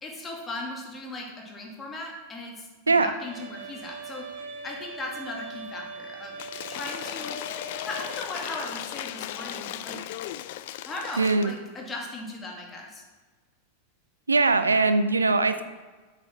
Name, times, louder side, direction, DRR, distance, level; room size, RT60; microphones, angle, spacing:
voice 1, 0.0-4.4 4.6-6.3 6.7-7.4 7.8-10.0 10.8-13.0, left 2 dB, 20° left, -1 dB, 2.3 m, -38 dB
Bowed string instrument, 3.2-8.2, right 5 dB, 55° right, 1.5 m, -42 dB
Cheering / Applause / Crowd, 6.4-11.6, left 13 dB, 50° left, 0.4 m, -36 dB
voice 2, 11.2-11.5 14.3-15.6, right 3 dB, 80° right, 11 dB, 0.5 m, -21 dB
8.5 x 6.6 x 6.1 m, 1.3 s
figure-of-eight pair, 90°, 0 cm